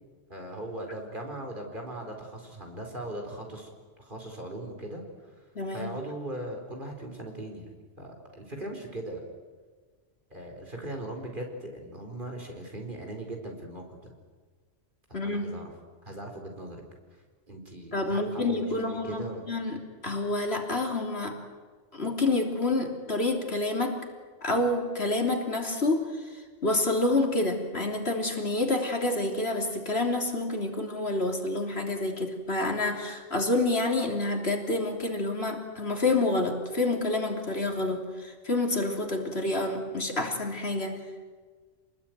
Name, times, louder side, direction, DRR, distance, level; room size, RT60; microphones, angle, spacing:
voice 1, 0.3-3.7 4.0-5.0 5.7-7.7 8.0-9.2 10.3-14.1 15.1-15.7 16.0-16.8 17.5-19.5, right 1 dB, 40° right, 2 dB, 4.7 m, -39 dB
voice 2, 5.6-5.9 15.1-15.6 17.9-21.4 21.9-24.0 24.4-41.0, left 2 dB, 55° left, 3 dB, 3.5 m, -28 dB
28.5 x 20.5 x 9.5 m, 1.5 s
omnidirectional pair, 1.3 m